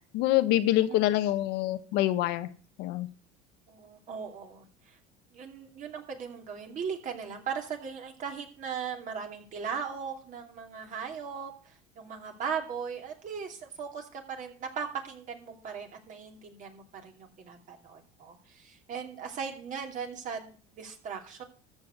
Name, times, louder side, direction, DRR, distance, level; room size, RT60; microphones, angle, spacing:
voice 1, 0.1-2.5 2.8-3.1, left 14 dB, 65° left, 12 dB, 1.2 m, -25 dB
voice 2, 0.9-1.4 3.7-4.7 5.3-21.4, right 6 dB, 45° right, 3 dB, 2.6 m, -38 dB
13.5 x 4.7 x 8.0 m, 0.41 s
supercardioid pair, 105°, 18 cm